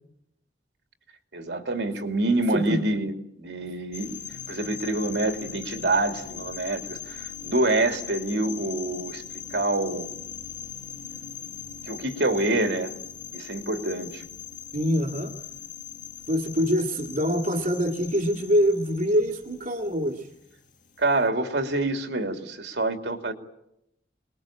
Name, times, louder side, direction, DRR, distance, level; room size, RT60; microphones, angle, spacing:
voice 1, 1.3-3.1 3.4-4.2 4.5-9.2 9.5-10.1 11.9-12.9 13.3-14.2 21.0-23.3, right 2 dB, 75° right, 6 dB, 2.7 m, -26 dB
voice 2, 2.5-2.8 14.7-15.3 16.3-20.3, equal, 50° right, 2 dB, 2.0 m, -24 dB
sound 1, 3.9-21.3, left 8 dB, 50° left, 2.0 m, -40 dB
27.5 x 21.5 x 8.8 m, 0.82 s
head